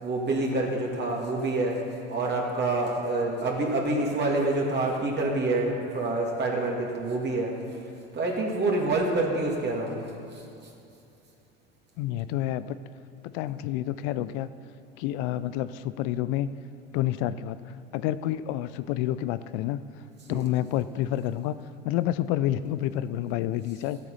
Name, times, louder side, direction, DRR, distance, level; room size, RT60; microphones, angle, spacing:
voice 1, 0.0-1.8 2.1-7.5 8.1-10.0 20.3-20.5, right 2 dB, 35° right, -1 dB, 2.2 m, -27 dB
voice 2, 12.0-12.8 13.2-14.5 15.0-16.5 16.9-19.8 20.3-21.5 21.8-24.1, left 13 dB, 65° left, 15 dB, 0.5 m, -29 dB
14.5 x 8.4 x 5.6 m, 2.7 s
hypercardioid pair, 85°, 31 cm